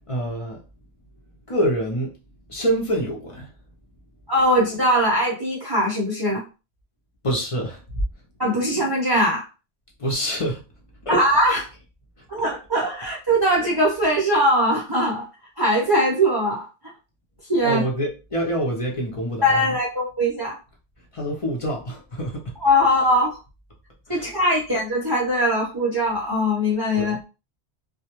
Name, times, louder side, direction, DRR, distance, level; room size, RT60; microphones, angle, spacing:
voice 1, 0.1-0.6 1.5-2.2 2.5-3.5 7.2-8.0 10.0-10.6 11.0-11.2 17.6-19.8 21.1-22.6 24.1-24.3 27.0-27.2, right 1 dB, 40° left, 0.5 m, -26 dB
voice 2, 4.3-6.4 8.4-9.5 11.1-11.6 12.3-15.2 15.6-16.7 17.5-17.8 19.4-20.6 22.6-23.4 24.1-27.2, equal, 25° right, 0.6 m, -21 dB
2.2 x 2.1 x 2.9 m
omnidirectional pair, 1.1 m